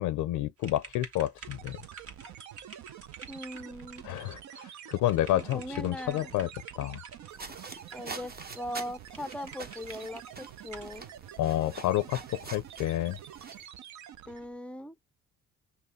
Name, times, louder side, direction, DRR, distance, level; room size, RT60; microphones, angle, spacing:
voice 1, 0.0-1.8 4.0-6.5 6.8-7.0 11.4-13.2, left 13 dB, 85° left, 0.5 m, -29 dB
sound 1, 0.6-7.3 7.9-8.4 8.7-8.8 9.1-10.3 10.7-10.9, right 4 dB, 50° right, 1.5 m, -50 dB
sound 2, 1.4-14.6, right 10 dB, 70° right, 0.6 m, -47 dB
voice 2, 3.3-4.1 5.3-6.3 7.9-11.1 14.3-14.9, left 1 dB, 5° left, 0.4 m, -40 dB
sound 3, 7.3-13.6, right 4 dB, 30° right, 0.8 m, -46 dB
5.6 x 2.1 x 3.1 m
cardioid pair, 90°, 30 cm